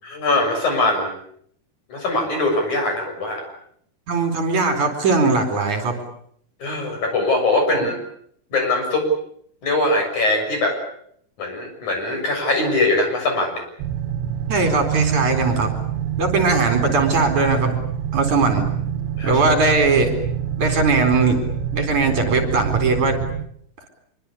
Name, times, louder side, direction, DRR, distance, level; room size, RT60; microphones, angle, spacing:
voice 1, 0.0-1.1 1.9-3.4 6.6-8.0 8.5-9.1 9.6-10.8 11.4-13.6 19.2-19.4, left 2 dB, 50° left, 4 dB, 8.2 m, -21 dB
voice 2, 4.1-6.0 14.5-15.7 16.2-17.8 18.1-18.7 19.2-20.1 20.6-21.5 21.7-23.2, right 3 dB, 50° right, 6 dB, 5.4 m, -19 dB
sound 1, 13.8-23.5, right 9 dB, 80° right, 3.2 m, -26 dB
25.5 x 24.5 x 8.5 m, 0.69 s
omnidirectional pair, 4.4 m